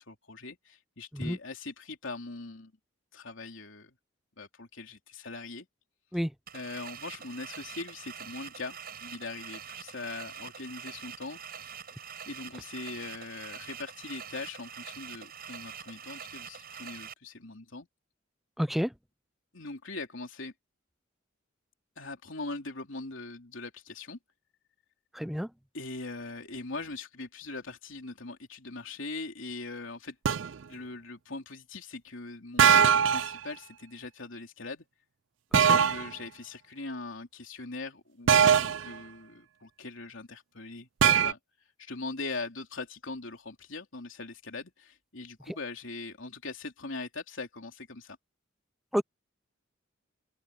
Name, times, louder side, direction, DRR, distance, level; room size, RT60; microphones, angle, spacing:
voice 1, 0.0-2.7 3.1-3.9 4.4-5.7 6.5-11.8 12.2-17.9 19.5-20.5 22.0-24.2 25.7-30.1 30.7-34.8 35.6-40.9 41.2-41.4 41.8-48.2, left 3 dB, 70° left, 3.3 m, -41 dB
sound 1, 6.5-17.1, right 8 dB, 50° right, 7.6 m, -45 dB
voice 2, 18.6-18.9 25.1-25.5 35.5-35.8 48.9-49.0, equal, ahead, 0.4 m, -29 dB
sound 2, 30.2-30.5 32.6-33.3 35.5-36.1 38.3-38.9 41.0-41.3, right 8 dB, 65° right, 0.4 m, -21 dB
head